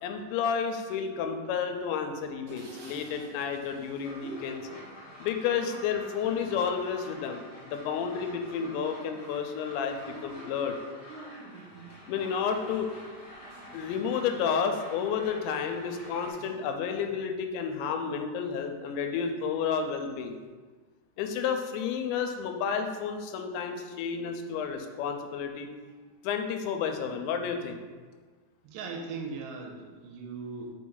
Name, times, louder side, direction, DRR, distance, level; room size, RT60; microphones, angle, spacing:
voice 1, 0.0-4.6 5.2-10.8 12.1-12.9 13.7-20.4 21.2-25.7 26.2-27.8, left 6 dB, 90° left, 5 dB, 2.9 m, -31 dB
sound 1, 2.5-17.2 17.7-18.6 19.2-19.3 19.6-20.4, right 2 dB, 65° right, 2.2 m, -51 dB
sound 2, 4.0-16.3, left 1 dB, 50° left, 1.0 m, -48 dB
voice 2, 28.6-30.7, right 4 dB, 85° right, 1 dB, 2.9 m, -39 dB
5.7 x 5.0 x 3.9 m, 1.4 s
omnidirectional pair, 5.1 m